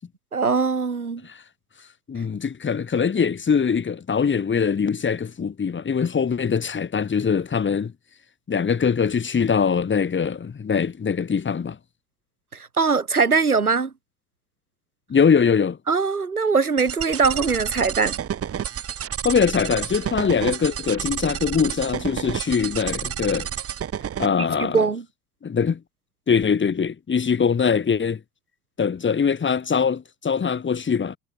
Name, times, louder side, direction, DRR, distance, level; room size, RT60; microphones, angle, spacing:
voice 1, 0.3-1.2 12.5-13.9 15.9-18.2 24.4-25.0, right 5 dB, 85° right, 1.9 m, -21 dB
voice 2, 2.1-7.9 8.5-11.8 15.1-15.8 19.2-23.5 24.2-24.8 25.4-25.8 26.3-28.2 28.8-31.2, left 6 dB, 25° left, 7.7 m, -22 dB
sound 1, 16.8-24.3, right 9 dB, 30° right, 3.0 m, -30 dB
figure-of-eight pair, 65°, 43 cm